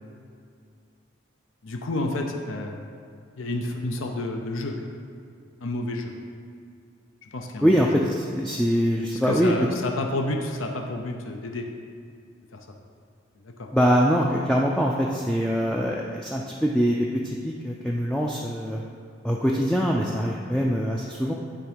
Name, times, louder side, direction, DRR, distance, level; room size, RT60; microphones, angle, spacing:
voice 1, 1.6-2.8 3.4-4.9 5.6-6.2 7.2-7.7 9.1-11.7 12.5-12.7 13.4-13.7, left 2 dB, 80° left, 3 dB, 0.6 m, -30 dB
voice 2, 7.6-9.5 13.7-18.8 19.2-21.3, equal, 5° left, -2 dB, 0.3 m, -23 dB
9.8 x 3.6 x 5.1 m, 2.3 s
head